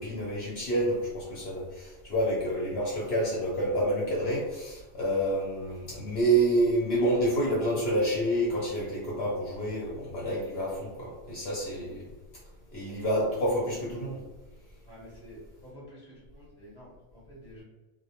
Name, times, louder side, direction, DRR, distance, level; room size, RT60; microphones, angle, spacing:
voice 1, 0.0-12.1 12.7-14.2, right 1 dB, 60° left, -4 dB, 0.7 m, -28 dB
voice 2, 14.9-17.6, equal, 25° right, -8 dB, 0.6 m, -49 dB
2.1 x 2.1 x 2.8 m, 1.2 s
omnidirectional pair, 1.4 m